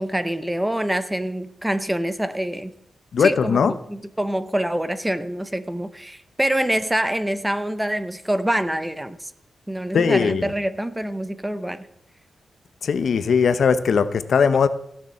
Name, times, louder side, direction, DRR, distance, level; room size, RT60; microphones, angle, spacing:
voice 1, 0.0-2.7 3.2-9.3 9.7-11.9, right 1 dB, 5° right, 12 dB, 0.7 m, -25 dB
voice 2, 3.1-3.7 9.9-10.5 12.8-14.7, left 6 dB, 60° left, 13 dB, 0.8 m, -19 dB
15.5 x 6.7 x 8.6 m, 0.77 s
wide cardioid pair, 155°, 0 cm